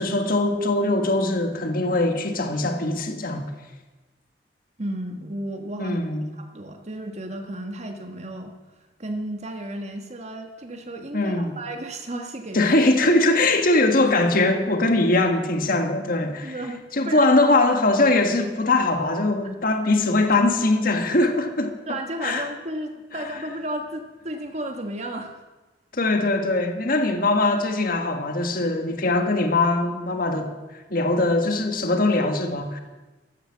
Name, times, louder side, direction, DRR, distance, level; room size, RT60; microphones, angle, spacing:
voice 1, 0.0-3.5 5.8-6.3 11.1-11.5 12.5-16.6 16.9-21.7 22.2-22.5 23.1-23.2 25.9-32.8, left 2 dB, 55° left, 5 dB, 1.7 m, -21 dB
voice 2, 4.8-6.0 6.4-8.5 9.0-12.7 16.4-17.3 21.9-25.4, right 1 dB, 40° right, 4 dB, 1.5 m, -33 dB
14.5 x 13.0 x 7.3 m, 1.2 s
head